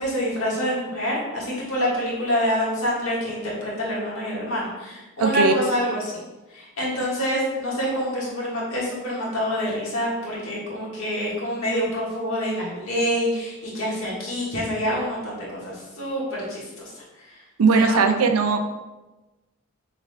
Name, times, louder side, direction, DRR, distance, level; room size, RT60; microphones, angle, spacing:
voice 1, 0.0-6.2 6.5-17.4 17.7-18.0, equal, 70° left, -5 dB, 1.5 m, -27 dB
voice 2, 5.2-5.5 17.6-18.6, right 4 dB, 75° right, 7 dB, 0.4 m, -18 dB
5.8 x 3.4 x 2.2 m, 1.1 s
head